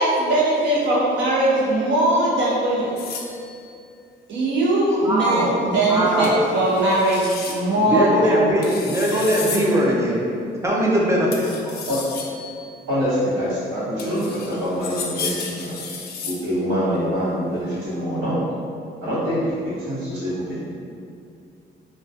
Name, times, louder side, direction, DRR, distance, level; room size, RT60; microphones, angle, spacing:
voice 1, 0.0-3.0 4.3-8.7, right 1 dB, 65° right, -5 dB, 0.7 m, -20 dB
sound 1, 3.0-3.7 6.2-6.4 6.7-7.6 8.6-9.7 11.3-12.8 14.0-16.4, left 5 dB, 55° left, 0.4 m, -33 dB
voice 2, 5.0-5.6 5.9-6.4 7.9-10.3 10.6-11.5, equal, 15° right, -4 dB, 0.5 m, -20 dB
voice 3, 11.6-12.0 12.9-15.8 16.3-18.4 19.0-20.6, equal, 90° right, -11 dB, 1.1 m, -25 dB
2.2 x 2.2 x 2.6 m, 2.4 s
cardioid pair, 90°, 20 cm